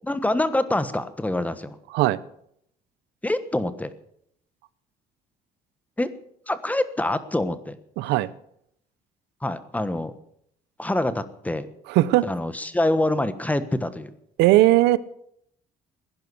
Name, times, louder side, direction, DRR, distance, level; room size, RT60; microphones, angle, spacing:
voice 1, 0.1-1.8 3.2-3.9 6.0-6.1 6.5-7.8 9.4-10.1 10.8-11.7 12.2-14.1, left 1 dB, 10° left, 12 dB, 1.3 m, -25 dB
voice 2, 8.0-8.3 11.9-12.3 14.4-15.0, right 16 dB, 90° right, 18 dB, 0.7 m, -18 dB
16.5 x 10.5 x 7.0 m, 0.72 s
cardioid pair, 110°, 17 cm